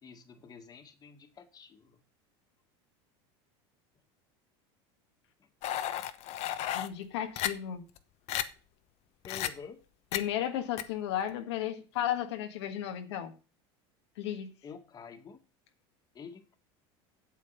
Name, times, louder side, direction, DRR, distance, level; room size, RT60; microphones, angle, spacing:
voice 1, 0.0-2.0 5.4-5.5 9.2-9.8 14.6-15.4 16.1-16.6, left 6 dB, 30° left, 1.7 m, -48 dB
sound 1, 5.6-6.9 7.4-7.5 8.0-8.1 8.3-8.4 9.2-9.5 10.1-10.2 10.8-10.9, left 12 dB, 50° left, 1.0 m, -33 dB
voice 2, 6.7-7.8 10.1-13.3 14.2-14.5, left 11 dB, 90° left, 1.5 m, -34 dB
8.3 x 7.5 x 5.6 m
supercardioid pair, 125°, 14 cm